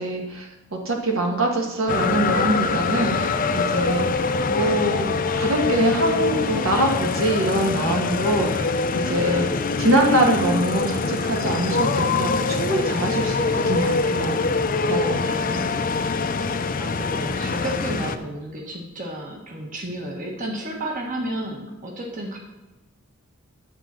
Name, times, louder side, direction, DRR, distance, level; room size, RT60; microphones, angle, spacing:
voice 1, 0.0-4.2 4.5-5.1 5.4-9.5 9.8-15.2 15.5-15.7, right 1 dB, 70° right, 1 dB, 1.7 m, -24 dB
sound 1, 1.9-18.2, left 4 dB, 40° left, 0.5 m, -24 dB
voice 2, 9.2-9.6 15.2-15.6 16.8-22.4, right 1 dB, 40° right, 0 dB, 1.4 m, -32 dB
11.5 x 4.3 x 7.4 m, 1.1 s
head